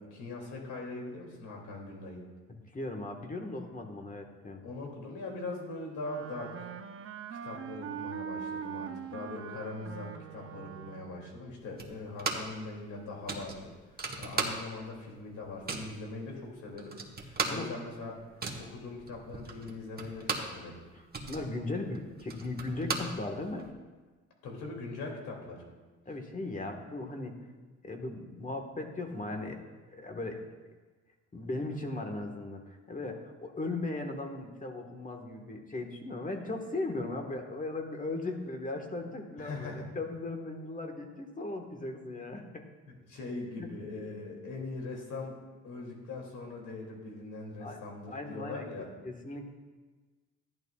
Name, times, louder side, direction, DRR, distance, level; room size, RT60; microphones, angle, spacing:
voice 1, 0.0-2.2 4.6-6.7 7.4-18.2 18.6-20.8 24.4-25.6 39.4-39.9 42.9-45.4 45.6-48.9, left 3 dB, 80° left, -1 dB, 2.8 m, -41 dB
voice 2, 2.5-4.6 17.4-17.7 20.9-23.7 26.0-27.4 27.8-29.6 29.9-30.4 31.3-42.6 43.6-43.7 47.6-47.8 48.1-48.7 49.0-49.5, left 2 dB, 25° left, 3 dB, 1.5 m, -37 dB
Wind instrument woodwind instrument, 6.0-11.3, right 8 dB, 45° right, 0.7 m, -42 dB
sound 1, 11.8-12.6 12.9-13.0 13.3-15.0 15.2-16.0 16.5-16.6 16.8-20.6 20.9-23.7, right 3 dB, 30° right, 1.4 m, -36 dB
13.5 x 10.5 x 2.4 m, 1.3 s
cardioid pair, 90°, 30 cm